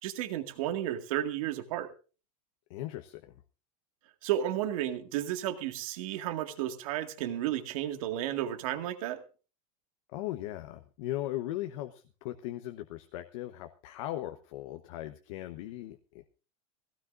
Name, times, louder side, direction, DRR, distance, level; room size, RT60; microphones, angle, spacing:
voice 1, 0.0-1.9 4.2-9.2, right 12 dB, 75° right, 7 dB, 2.0 m, -33 dB
voice 2, 2.7-3.4 10.1-16.2, left 14 dB, 70° left, 7 dB, 1.1 m, -38 dB
19.5 x 16.5 x 2.6 m, 0.34 s
supercardioid pair, 145°, 18 cm